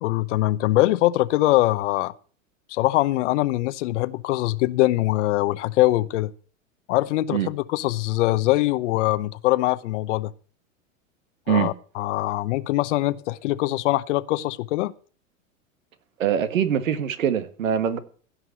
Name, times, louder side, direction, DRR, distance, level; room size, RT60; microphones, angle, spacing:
voice 1, 0.0-2.1 2.7-6.3 6.9-10.3 11.5-14.9, left 17 dB, 65° left, 0.9 m, -22 dB
voice 2, 16.2-18.0, right 9 dB, 80° right, 1.6 m, -23 dB
16.5 x 5.8 x 8.0 m
hypercardioid pair, 100°, 39 cm